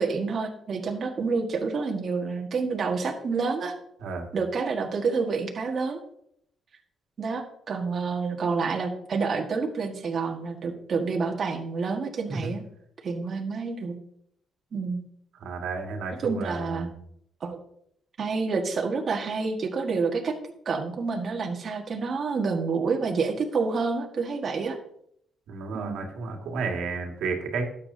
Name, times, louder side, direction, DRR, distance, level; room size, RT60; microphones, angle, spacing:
voice 1, 0.0-3.7 4.3-6.0 7.2-12.6 13.0-14.0 14.7-15.0 16.2-16.9 17.4-17.6 18.2-20.3 20.6-24.8 25.7-26.0, right 4 dB, 50° right, 1 dB, 1.6 m, -28 dB
voice 2, 15.4-16.9 25.5-27.6, right 4 dB, 80° right, 2 dB, 2.1 m, -32 dB
12.5 x 8.5 x 2.8 m, 0.70 s
cardioid pair, 90°, 0 cm